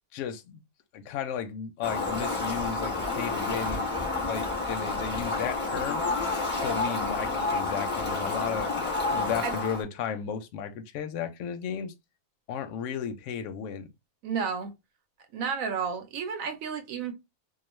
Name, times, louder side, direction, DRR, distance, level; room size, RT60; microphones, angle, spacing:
voice 1, 0.1-0.6 0.9-3.9 4.2-6.0 6.6-11.9 12.5-13.9, left 7 dB, 70° left, 0.8 m, -34 dB
Fowl, 1.8-9.8, left 3 dB, 10° left, 0.9 m, -30 dB
voice 2, 14.2-14.7 15.3-17.1, right 6 dB, 75° right, 1.0 m, -31 dB
2.4 x 2.3 x 3.0 m
omnidirectional pair, 1.5 m